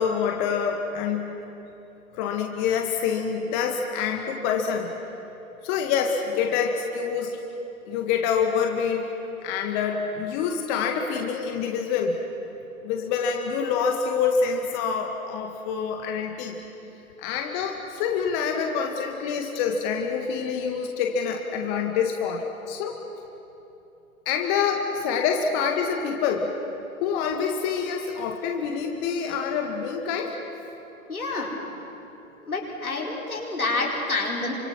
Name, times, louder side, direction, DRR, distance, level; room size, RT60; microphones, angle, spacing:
voice 1, 0.0-1.4 2.1-4.9 5.6-7.4 7.9-9.1 9.4-12.1 12.8-16.6 17.2-23.0 24.3-26.5 27.0-30.3, left 6 dB, 30° left, 3 dB, 1.8 m, -26 dB
voice 2, 31.1-31.5 32.5-34.5, left 3 dB, 80° left, -1 dB, 4.7 m, -28 dB
28.5 x 25.5 x 6.1 m, 3.0 s
figure-of-eight pair, 110°, 43 cm